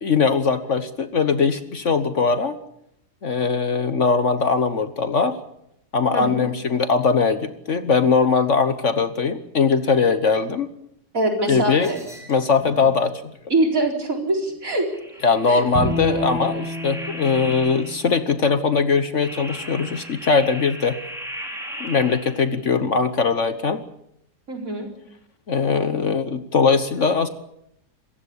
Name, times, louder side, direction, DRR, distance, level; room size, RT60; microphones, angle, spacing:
voice 1, 0.0-2.6 3.2-5.4 5.9-10.7 11.5-11.9 12.3-13.1 15.2-21.0 21.8-23.8 25.5-27.3, left 5 dB, 50° left, 11 dB, 1.4 m, -20 dB
voice 2, 6.1-6.4 11.1-12.0 13.5-14.9 15.5-15.6 24.5-24.9, right 2 dB, 55° right, 2 dB, 4.7 m, -23 dB
sound 1, 11.8-13.1 14.9-18.2 19.2-22.6, equal, ahead, 5.6 m, -38 dB
Bowed string instrument, 15.7-19.0, equal, 20° right, 6.5 m, -30 dB
27.0 x 15.5 x 8.5 m, 0.79 s
omnidirectional pair, 1.7 m